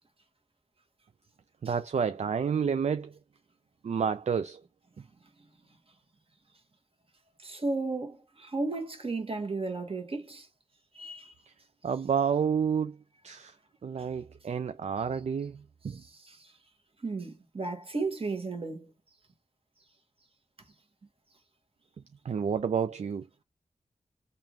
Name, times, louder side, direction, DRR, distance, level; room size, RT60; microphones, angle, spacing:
voice 1, 1.6-3.2 3.8-4.6 11.5-11.6 11.8-13.0 13.2-13.6 13.8-16.0 22.2-23.3, right 7 dB, 65° right, 0.4 m, -30 dB
voice 2, 7.4-10.5 10.9-11.3 14.0-14.1 15.9-16.5 17.0-18.9, right 3 dB, 45° right, 1.3 m, -34 dB
3.5 x 2.5 x 2.8 m
wide cardioid pair, 65°, 13 cm